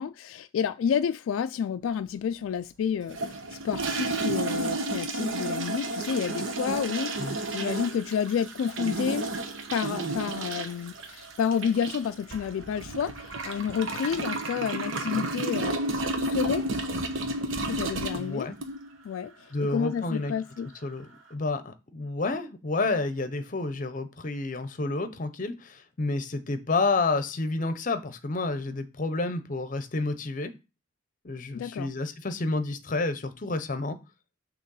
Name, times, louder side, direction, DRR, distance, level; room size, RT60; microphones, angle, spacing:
voice 1, 0.0-9.3 9.7-15.8 16.2-16.7 17.7-18.5 19.0-20.7 31.5-31.9, left 7 dB, 85° left, 0.3 m, -30 dB
sound 1, 3.1-19.0, right 2 dB, 80° right, 1.0 m, -32 dB
voice 2, 18.1-18.6 19.5-20.3 20.6-30.5 31.2-34.0, left 3 dB, 40° left, 0.7 m, -30 dB
6.3 x 3.0 x 5.4 m
head